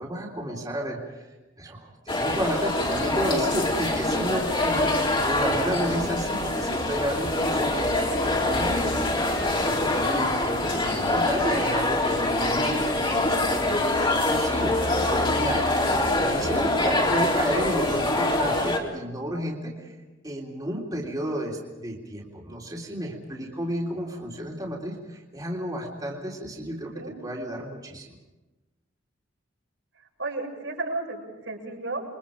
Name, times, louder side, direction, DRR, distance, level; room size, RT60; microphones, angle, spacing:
voice 1, 0.0-14.8 15.1-15.7 16.2-20.0 20.2-28.2, right 1 dB, 20° right, -3 dB, 3.4 m, -32 dB
sound 1, 2.1-18.8, left 2 dB, 25° left, 3.8 m, -24 dB
voice 2, 10.6-11.2 26.9-27.1 30.2-32.0, right 2 dB, 75° right, -1 dB, 6.7 m, -34 dB
29.0 x 23.5 x 5.1 m, 1.1 s
head